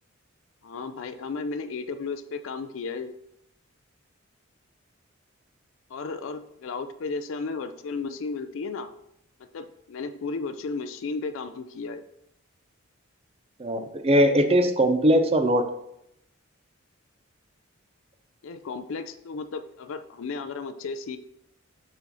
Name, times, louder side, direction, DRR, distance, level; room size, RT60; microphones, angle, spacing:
voice 1, 0.6-3.1 5.9-8.9 9.5-12.0 18.4-21.2, left 4 dB, 70° left, 9 dB, 0.4 m, -34 dB
voice 2, 13.6-15.6, equal, 30° right, 8 dB, 0.5 m, -20 dB
6.9 x 4.2 x 3.9 m, 0.79 s
head